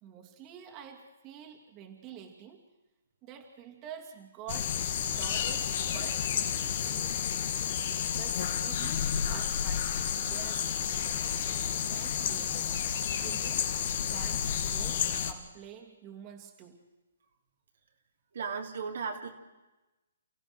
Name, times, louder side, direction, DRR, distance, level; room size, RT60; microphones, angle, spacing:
voice 1, 0.0-2.6 3.2-7.3 8.1-11.3 11.8-12.9 13.2-13.8 14.1-16.8, right 8 dB, 30° right, 2 dB, 2.7 m, -48 dB
sound 1, 4.5-15.3, left 8 dB, 50° left, 2.0 m, -31 dB
voice 2, 18.3-19.3, right 5 dB, 65° right, 2 dB, 3.0 m, -35 dB
29.5 x 15.5 x 6.4 m, 1.1 s
hypercardioid pair, 140°, 0 cm